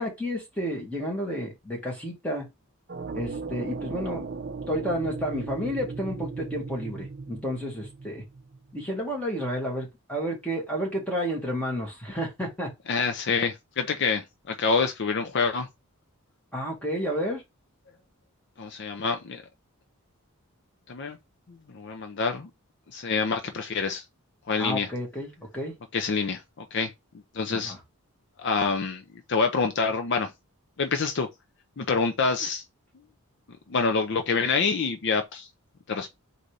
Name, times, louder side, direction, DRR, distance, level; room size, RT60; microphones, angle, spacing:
voice 1, 0.0-2.5 3.1-4.3 4.7-8.2 8.7-12.7 16.5-17.4 24.6-25.7 27.5-27.8, equal, 5° left, 1.7 m, -31 dB
sound 1, 2.9-8.7, right 4 dB, 45° right, 0.6 m, -37 dB
voice 2, 12.9-15.7 18.6-19.4 20.9-21.2 21.7-22.5 22.9-24.0 24.5-24.9 25.9-26.9 27.3-27.7 28.4-29.0 29.3-30.3 30.8-31.3 31.8-32.6 33.7-35.5 35.9-36.1, left 4 dB, 55° left, 0.5 m, -26 dB
4.0 x 2.7 x 4.7 m
head